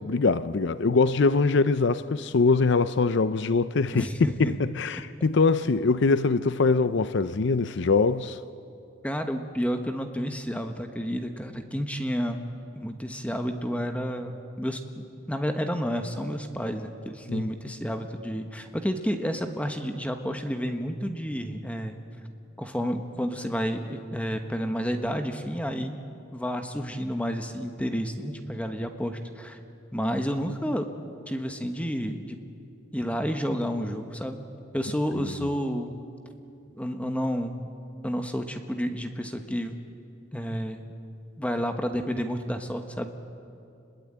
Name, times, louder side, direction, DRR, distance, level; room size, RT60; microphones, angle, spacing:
voice 1, 0.0-8.4 17.3-17.5, left 4 dB, 65° left, 0.6 m, -23 dB
voice 2, 3.9-4.6 9.0-12.5 12.8-14.8 15.3-22.0 22.6-26.0 26.3-29.6 29.9-30.9 31.3-32.4 32.9-34.4 34.7-36.0 36.8-37.7 38.0-39.7 40.3-40.9 41.4-43.1, equal, 5° left, 1.3 m, -30 dB
28.5 x 21.5 x 8.8 m
head